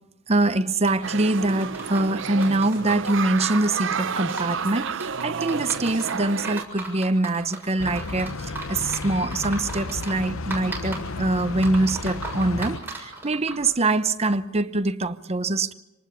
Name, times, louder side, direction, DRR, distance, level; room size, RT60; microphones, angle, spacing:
voice 1, 0.3-15.7, right 2 dB, 30° right, 1.0 m, -24 dB
sound 1, 0.8-13.7, right 3 dB, 10° right, 7.0 m, -38 dB
sound 2, 1.0-6.6, right 6 dB, 65° right, 0.7 m, -31 dB
sound 3, 7.8-12.8, left 3 dB, 80° left, 0.9 m, -33 dB
27.0 x 19.0 x 6.8 m
head